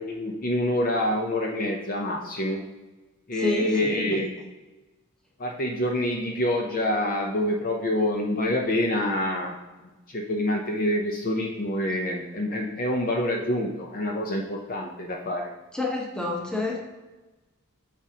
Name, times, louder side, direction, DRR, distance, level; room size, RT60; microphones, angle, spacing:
voice 1, 0.0-2.6 3.3-4.3 5.4-9.6 10.1-15.5, left 1 dB, 40° left, 1 dB, 0.7 m, -26 dB
voice 2, 3.4-4.2 15.7-16.8, left 2 dB, 5° left, -1 dB, 1.1 m, -28 dB
8.5 x 4.9 x 2.9 m, 1.1 s
head